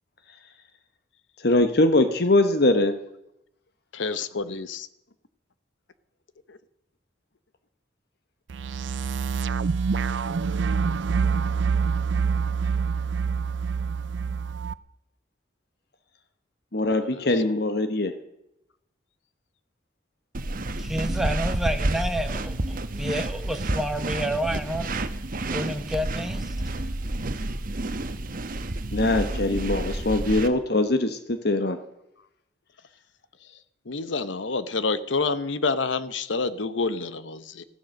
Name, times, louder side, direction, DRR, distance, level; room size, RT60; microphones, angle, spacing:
voice 1, 1.4-2.9 16.7-18.1 28.9-31.8, left 2 dB, 60° left, 9 dB, 1.1 m, -22 dB
voice 2, 3.9-4.9 6.5-6.6 16.8-17.3 33.9-37.6, left 4 dB, 90° left, 14 dB, 0.9 m, -28 dB
sound 1, 8.5-14.7, right 5 dB, 75° right, 0.5 m, -26 dB
sound 2, 20.3-30.5, right 2 dB, 50° right, 1.1 m, -30 dB
voice 3, 20.8-25.0 25.5-26.6 29.5-29.6, equal, ahead, 6 dB, 1.0 m, -29 dB
14.5 x 12.0 x 6.5 m, 0.83 s
head